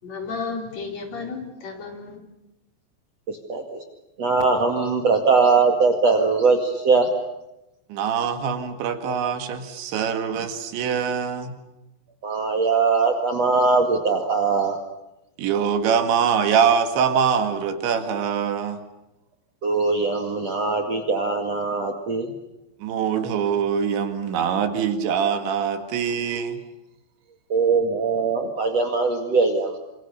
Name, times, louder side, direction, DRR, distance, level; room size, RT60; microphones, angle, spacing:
voice 1, 0.0-2.2, left 4 dB, 40° left, 2 dB, 5.2 m, -33 dB
voice 2, 3.3-3.8 4.2-7.1 12.2-14.8 19.6-22.3 27.5-29.8, right 4 dB, 45° right, 3 dB, 2.6 m, -21 dB
voice 3, 7.9-11.5 15.4-18.8 22.8-26.6, right 7 dB, 85° right, 7 dB, 4.3 m, -23 dB
29.0 x 27.0 x 6.8 m, 0.93 s
omnidirectional pair, 5.1 m